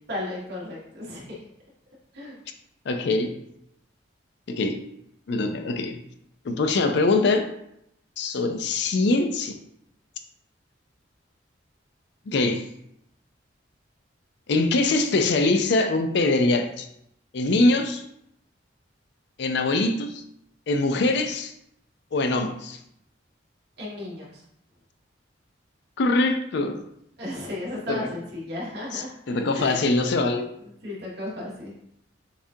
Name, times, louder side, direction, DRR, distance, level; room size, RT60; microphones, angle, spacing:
voice 1, 0.1-1.3 2.1-2.4 23.8-24.4 27.2-29.1 29.5-29.9 30.8-31.7, left 1 dB, 60° right, -5 dB, 1.6 m, -34 dB
voice 2, 2.9-3.4 4.5-4.8 5.3-6.0 6.5-7.5 8.2-9.6 12.3-12.7 14.5-16.9 17.3-18.0 19.4-20.2 20.7-21.5 22.1-22.8 26.0-26.8 27.9-28.1 28.9-30.5, left 2 dB, 65° left, 7 dB, 0.4 m, -23 dB
6.9 x 2.4 x 2.7 m, 0.75 s
head